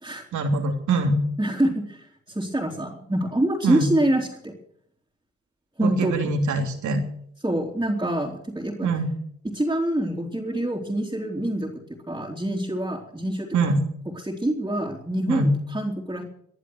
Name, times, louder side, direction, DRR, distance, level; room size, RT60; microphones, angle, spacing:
voice 1, 0.3-1.2 3.6-3.9 5.8-7.0 8.8-9.1 13.5-13.8 15.3-15.5, right 2 dB, 75° right, 3 dB, 3.1 m, -23 dB
voice 2, 1.4-4.5 5.8-6.3 7.4-8.9 9.4-11.7 12.1-13.5 14.2-16.2, right 1 dB, 10° right, -4 dB, 3.5 m, -26 dB
20.5 x 11.0 x 6.3 m, 0.66 s
supercardioid pair, 65°, 30 cm